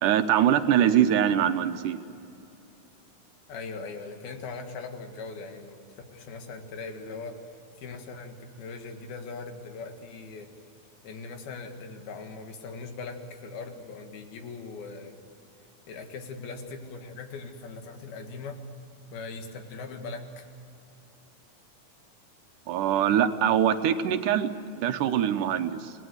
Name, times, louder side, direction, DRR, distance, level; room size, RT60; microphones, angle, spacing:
voice 1, 0.0-2.0 22.7-25.9, right 9 dB, 70° right, 8 dB, 2.3 m, -23 dB
voice 2, 3.5-5.9 6.1-10.5 11.0-15.2 15.9-18.6 19.1-20.5, left 4 dB, 85° left, 5 dB, 3.8 m, -40 dB
28.5 x 19.0 x 8.0 m, 2.7 s
omnidirectional pair, 4.2 m